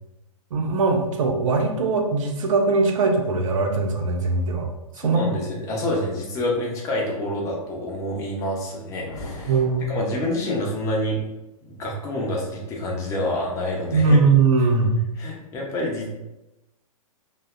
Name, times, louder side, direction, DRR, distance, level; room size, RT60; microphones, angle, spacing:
voice 1, 0.5-4.7 5.0-5.3 9.5-9.9 13.9-15.0, right 3 dB, 60° right, 2 dB, 0.5 m, -20 dB
voice 2, 5.0-9.5 9.9-11.2 11.8-14.2 15.2-16.1, left 1 dB, 15° left, -2 dB, 0.5 m, -27 dB
sound 1, 9.1-11.0, left 2 dB, 60° left, 0.7 m, -40 dB
2.6 x 2.0 x 2.3 m, 0.97 s
figure-of-eight pair, 110°, 19 cm